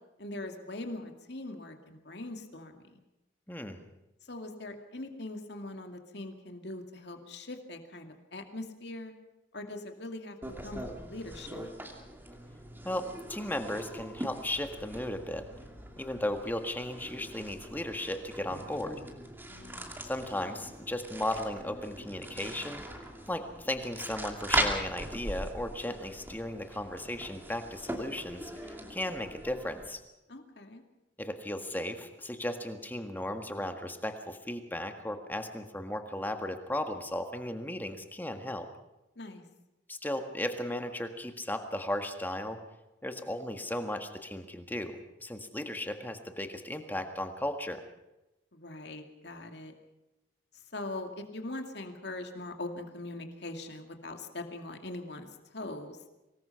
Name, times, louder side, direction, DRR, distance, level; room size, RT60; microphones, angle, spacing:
voice 1, 0.2-2.8 4.2-9.1 9.5-10.4 10.6-11.7 19.5-20.0 30.3-30.8 39.2-39.4 48.5-49.7 50.7-55.3 55.5-56.0, left 2 dB, 60° left, 5 dB, 2.4 m, -41 dB
voice 2, 3.5-3.8 12.8-15.5 16.0-19.0 20.0-22.8 23.3-30.0 31.2-38.7 39.9-42.6 43.0-47.8, left 1 dB, 10° left, 6 dB, 1.7 m, -36 dB
sound 1, 10.4-29.9, right 1 dB, 10° right, 2.5 m, -40 dB
24.5 x 19.5 x 5.8 m, 0.97 s
head